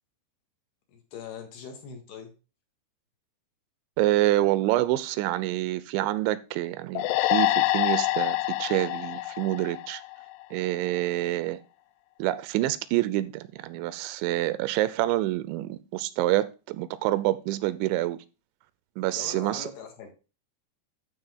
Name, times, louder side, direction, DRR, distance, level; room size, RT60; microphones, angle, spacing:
voice 1, 0.9-2.4 19.2-20.1, left 7 dB, 65° left, 3.4 m, -42 dB
voice 2, 4.0-10.0 10.5-11.6 12.2-18.2 19.0-19.7, right 16 dB, 90° right, 3.0 m, -27 dB
sound 1, 7.0-10.4, left 18 dB, 90° left, 3.0 m, -26 dB
12.5 x 4.3 x 3.6 m
omnidirectional pair, 5.3 m